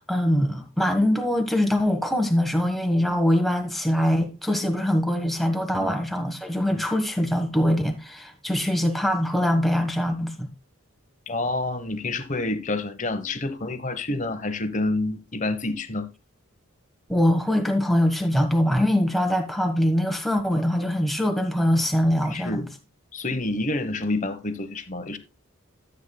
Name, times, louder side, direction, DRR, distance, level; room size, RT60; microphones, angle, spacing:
voice 1, 0.0-10.5 17.1-22.7, equal, ahead, 1.2 m, -23 dB
voice 2, 11.3-16.1 22.3-22.7 23.1-25.2, left 2 dB, 35° left, 1.0 m, -28 dB
13.0 x 8.1 x 2.2 m
head